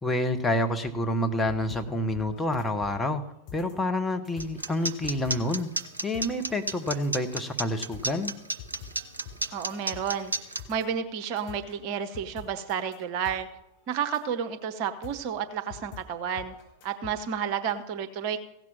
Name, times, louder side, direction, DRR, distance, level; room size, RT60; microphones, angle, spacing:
voice 1, 0.0-3.2 3.5-5.7 6.0-8.3, left 1 dB, 5° left, 4 dB, 1.0 m, -28 dB
sound 1, 0.8-17.7, left 6 dB, 40° left, 4.8 m, -48 dB
sound 2, 4.4-10.6, right 2 dB, 80° right, 0.8 m, -31 dB
voice 2, 9.5-10.3 10.7-13.5 13.9-16.5 16.8-18.4, right 7 dB, 45° right, 8 dB, 1.0 m, -31 dB
16.0 x 6.0 x 7.5 m, 0.84 s
figure-of-eight pair, 90°, 0 cm